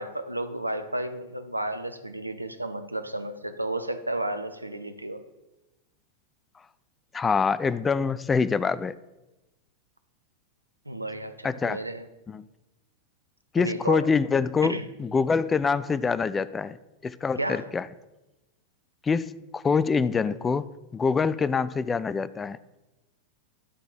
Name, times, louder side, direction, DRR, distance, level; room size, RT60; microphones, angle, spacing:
voice 1, 0.0-5.2 10.9-12.1 13.6-14.1 14.6-14.9 17.4-17.7, right 1 dB, 85° right, 10 dB, 0.6 m, -32 dB
voice 2, 7.1-8.9 11.4-11.8 12.3-12.5 13.5-16.8 17.0-17.8 19.0-20.7 20.9-22.6, left 5 dB, 15° left, 15 dB, 0.4 m, -25 dB
11.0 x 4.0 x 6.6 m, 1.0 s
figure-of-eight pair, 90°, 0 cm